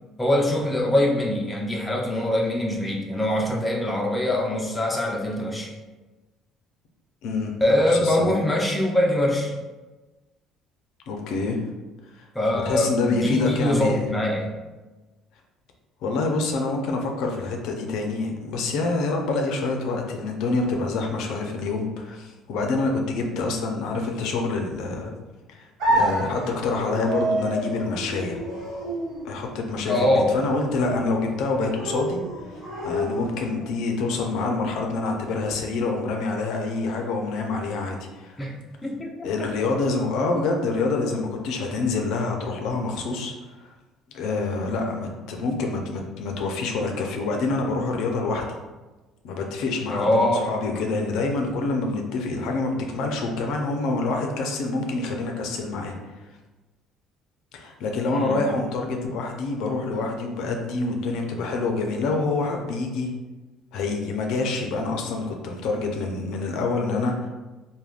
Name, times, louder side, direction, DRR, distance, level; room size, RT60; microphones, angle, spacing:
voice 1, 0.2-5.7 7.6-9.5 12.3-14.5 29.9-30.4 38.4-38.6 38.8-39.3 49.9-50.5 58.1-58.4, left 1 dB, 15° left, -1 dB, 0.5 m, -23 dB
voice 2, 7.2-7.5 7.9-8.3 11.1-11.6 12.1-12.3 12.7-14.1 16.0-25.1 25.5-28.4 29.2-32.2 32.8-38.4 39.2-43.3 43.6-43.7 44.1-48.5 49.2-55.9 57.5-63.1 63.7-67.3, left 3 dB, 75° left, 2 dB, 0.5 m, -26 dB
sound 1, 25.8-33.8, right 1 dB, 70° right, 0.8 m, -29 dB
3.4 x 2.2 x 2.3 m, 1.2 s
supercardioid pair, 90°, 0 cm